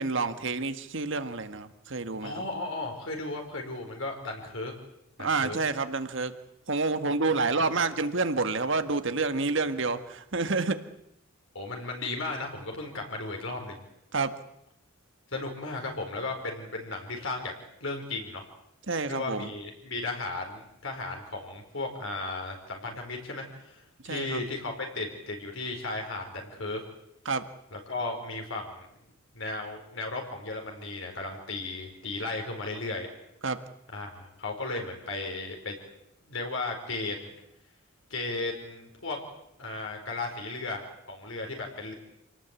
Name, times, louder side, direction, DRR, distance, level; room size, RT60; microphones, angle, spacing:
voice 1, 0.0-2.4 5.2-6.3 6.7-10.8 14.1-14.3 18.9-19.5 24.0-24.4 27.2-27.4 33.4-33.6, right 3 dB, 60° right, 9 dB, 1.7 m, -28 dB
voice 2, 2.2-4.7 5.2-5.6 7.3-7.6 11.5-13.8 15.3-17.5 17.8-18.4 19.1-26.8 27.7-28.9 29.3-33.1 33.9-35.7 36.2-37.3 38.1-39.2 39.6-41.9, left 2 dB, 65° left, 2 dB, 4.7 m, -35 dB
27.0 x 18.5 x 8.4 m, 0.78 s
head